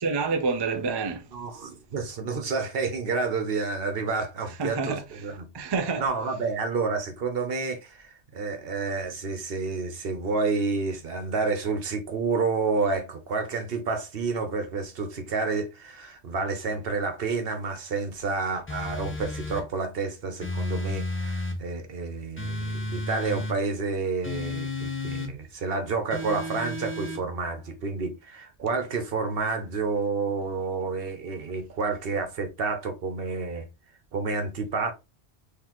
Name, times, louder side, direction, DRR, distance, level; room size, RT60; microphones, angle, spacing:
voice 1, 0.0-1.2 4.6-5.0 5.5-6.0, right 4 dB, 40° right, 0.4 m, -27 dB
voice 2, 1.3-5.5 6.0-33.7 34.1-34.9, right 4 dB, 60° right, 1.0 m, -29 dB
sound 1, 18.7-19.7 20.4-21.6 22.4-23.6 24.2-25.3 26.1-27.2, left 2 dB, 15° left, 0.6 m, -32 dB
3.9 x 3.3 x 3.0 m
omnidirectional pair, 1.1 m